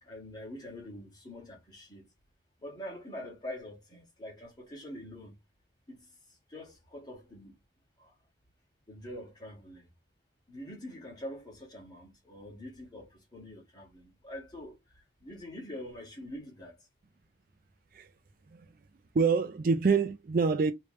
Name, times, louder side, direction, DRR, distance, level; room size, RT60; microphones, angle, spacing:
voice 1, 0.0-2.1 2.6-5.3 5.9-6.1 6.5-7.5 8.0-8.1 8.9-9.9 10.5-14.8 15.2-16.8, left 1 dB, 20° left, 1.8 m, -44 dB
voice 2, 19.1-20.7, right 5 dB, 45° right, 0.4 m, -26 dB
3.2 x 3.1 x 3.0 m
head